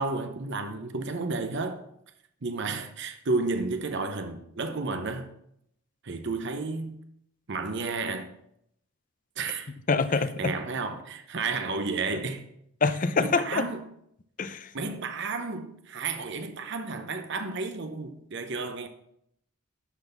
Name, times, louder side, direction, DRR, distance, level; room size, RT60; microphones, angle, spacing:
voice 1, 0.0-1.8 2.4-5.3 6.0-7.0 7.5-8.3 9.4-9.7 10.1-12.4 13.2-13.8 14.7-18.9, right 3 dB, 55° right, 0.8 m, -32 dB
voice 2, 9.9-10.5 12.8-13.7 14.4-14.7, left 4 dB, 40° left, 0.6 m, -25 dB
12.0 x 4.0 x 7.1 m
head